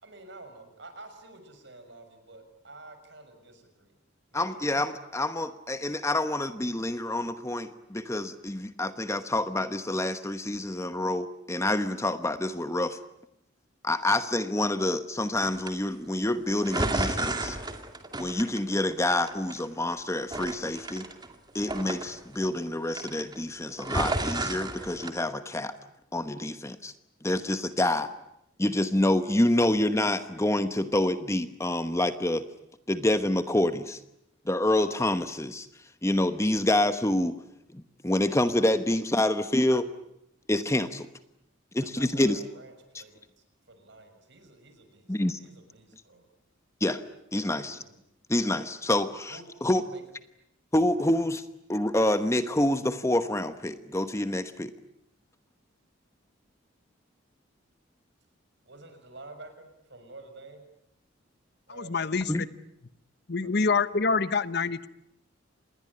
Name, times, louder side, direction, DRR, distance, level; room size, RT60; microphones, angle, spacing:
voice 1, 0.0-4.0 4.3-4.8 41.8-46.3 47.5-48.0 49.3-50.0 58.6-60.6 61.7-62.1 63.4-63.7, right 2 dB, 60° right, 7 dB, 6.3 m, -49 dB
voice 2, 4.3-13.0 13.8-17.6 18.2-21.1 21.5-25.7 26.1-26.9 27.2-28.1 28.6-32.4 32.9-34.0 34.5-35.7 36.0-37.3 37.7-39.9 40.5-41.1 41.7-42.4 45.1-45.4 46.8-47.0 47.3-47.8 48.3-49.8 50.7-51.4 51.7-54.7 62.3-62.5, left 1 dB, 15° left, 11 dB, 1.0 m, -27 dB
sound 1, 15.4-15.7 16.6-19.0 19.3-19.9 20.3-22.6 22.9-23.4 23.7-25.1, right 2 dB, 20° right, 2.3 m, -32 dB
voice 3, 61.7-62.5 63.3-64.9, left 4 dB, 55° left, 15 dB, 1.0 m, -26 dB
27.5 x 20.5 x 9.9 m, 0.81 s
head